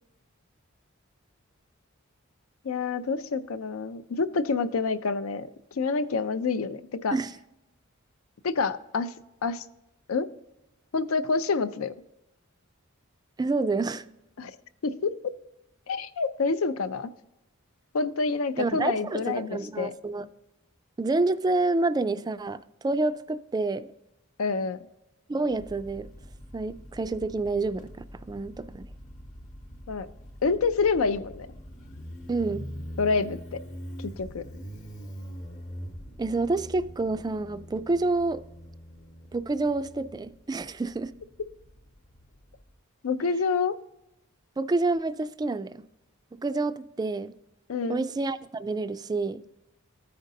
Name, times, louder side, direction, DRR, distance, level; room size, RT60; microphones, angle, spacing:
voice 1, 2.6-5.5 5.8-7.2 8.4-9.1 9.4-9.6 10.1-10.3 10.9-11.9 14.4-14.5 14.8-15.1 15.9-17.1 17.9-19.9 24.4-24.8 29.9-30.1 30.4-31.5 33.0-33.6 34.0-34.4 43.0-43.8 47.7-48.0, left 4 dB, 75° left, 0.5 m, -27 dB
voice 2, 13.4-14.0 18.6-20.3 21.0-23.9 25.3-26.1 26.5-27.9 28.3-28.9 32.3-32.6 36.2-38.4 39.3-41.1 44.6-45.8 46.3-47.3 47.9-49.4, right 3 dB, 20° right, 0.3 m, -28 dB
Motorcycle, 25.5-42.7, equal, 40° left, 0.9 m, -43 dB
14.0 x 5.1 x 2.7 m
head